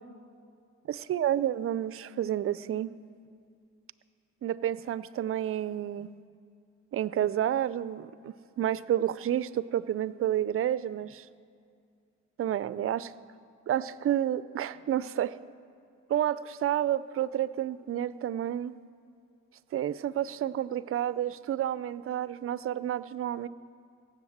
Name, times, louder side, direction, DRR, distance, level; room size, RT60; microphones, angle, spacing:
voice 1, 0.9-2.9 4.4-6.1 6.9-11.3 12.4-13.1 13.7-15.3 16.1-18.8 19.7-23.5, right 11 dB, 45° right, 17 dB, 0.5 m, -30 dB
17.0 x 7.9 x 7.3 m, 2.4 s
cardioid pair, 90°, 30 cm